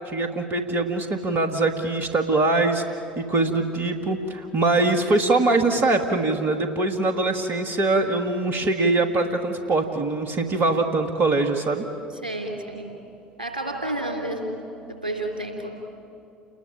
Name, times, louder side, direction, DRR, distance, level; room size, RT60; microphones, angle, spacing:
voice 1, 0.1-2.8 3.2-11.8, right 2 dB, 50° right, 6 dB, 2.1 m, -23 dB
voice 2, 12.2-12.9 13.4-14.6 14.9-15.7, right 1 dB, 85° right, 3 dB, 3.3 m, -30 dB
29.5 x 21.0 x 8.9 m, 2.8 s
figure-of-eight pair, 60°, 5 cm